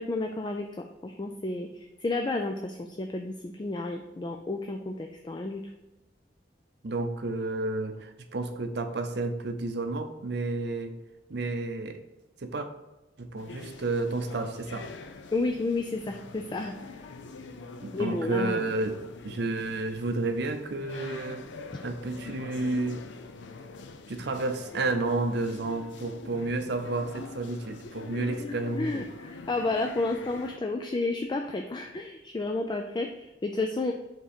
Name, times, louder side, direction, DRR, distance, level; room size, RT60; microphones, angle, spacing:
voice 1, 0.0-5.6 15.3-17.1 17.9-18.6 28.2-28.3 28.8-33.9, left 2 dB, 25° left, 3 dB, 0.3 m, -31 dB
voice 2, 6.8-11.0 11.3-12.0 12.4-12.7 13.2-14.9 17.8-19.0 19.2-21.5 21.8-23.1 24.1-29.0, right 2 dB, 65° right, 7 dB, 0.6 m, -31 dB
sound 1, 13.4-30.6, left 3 dB, 80° left, 0.5 m, -44 dB
5.1 x 3.7 x 5.1 m, 1.0 s
head